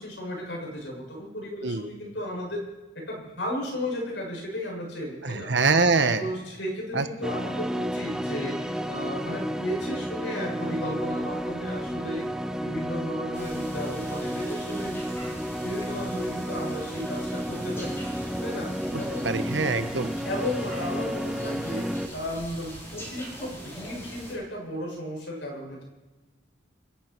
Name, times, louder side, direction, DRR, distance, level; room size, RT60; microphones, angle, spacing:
voice 1, 0.0-2.6 2.9-5.5 6.2-12.3 12.6-15.4 15.6-19.3 20.2-21.9 22.1-25.8, left 1 dB, 70° left, -1 dB, 7.0 m, -34 dB
voice 2, 5.2-6.3 6.9-7.1 18.9-20.1, right 4 dB, 65° right, 9 dB, 1.2 m, -24 dB
sound 1, 7.2-22.1, equal, 5° right, 0.7 m, -32 dB
sound 2, 13.3-24.3, equal, 15° left, 5.5 m, -42 dB
27.0 x 10.5 x 4.7 m, 1.2 s
head